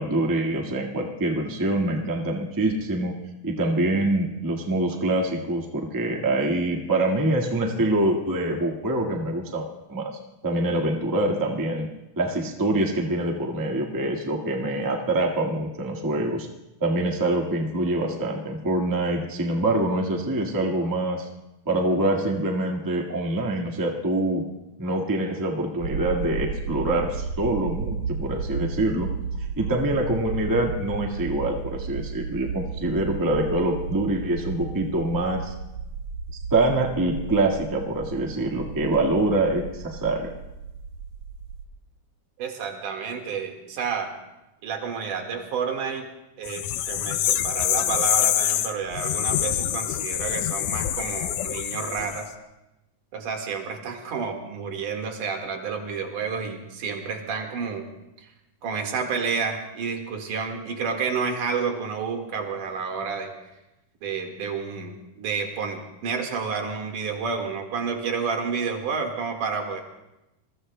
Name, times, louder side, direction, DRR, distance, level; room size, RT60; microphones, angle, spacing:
voice 1, 0.0-3.1 3.4-10.1 10.4-11.9 12.2-16.5 16.8-21.3 21.6-24.4 24.8-29.1 29.6-35.5 36.5-40.3, right 1 dB, 15° right, 0 dB, 0.6 m, -25 dB
sound 1, 25.8-41.7, right 5 dB, 70° right, 1.5 m, -34 dB
voice 2, 42.4-44.1 44.6-46.1 46.4-52.3 53.1-57.9 58.2-58.3 58.6-63.3 64.0-69.8, right 5 dB, 90° right, 3 dB, 3.3 m, -30 dB
sound 2, 46.5-52.3, left 12 dB, 85° left, 2.2 m, -26 dB
27.0 x 22.5 x 2.2 m, 0.94 s
omnidirectional pair, 3.5 m